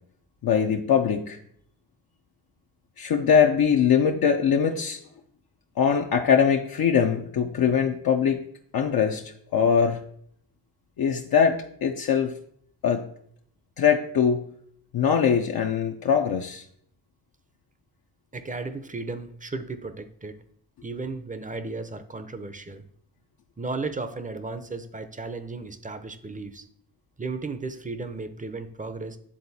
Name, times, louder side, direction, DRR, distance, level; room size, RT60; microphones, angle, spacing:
voice 1, 0.4-1.4 3.0-5.0 5.8-8.4 8.7-10.0 11.0-12.3 12.8-13.0 13.8-14.4 14.9-16.6, left 7 dB, 60° left, 2 dB, 0.6 m, -22 dB
voice 2, 18.3-20.4 20.8-22.8 23.6-26.7 27.2-29.2, right 3 dB, 20° right, 11 dB, 0.6 m, -35 dB
10.0 x 3.8 x 2.7 m, 0.65 s
cardioid pair, 55°, 42 cm